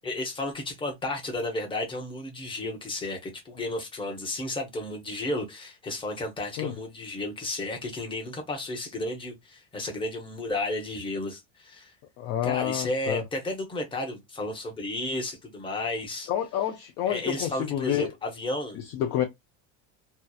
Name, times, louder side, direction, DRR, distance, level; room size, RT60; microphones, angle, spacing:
voice 1, 0.0-11.9 12.4-16.3 17.1-18.8, left 2 dB, 15° left, 0.7 m, -33 dB
voice 2, 12.2-13.2 16.3-18.1 18.7-19.2, left 10 dB, 40° left, 0.4 m, -28 dB
2.8 x 2.0 x 2.2 m
supercardioid pair, 135°, 40 cm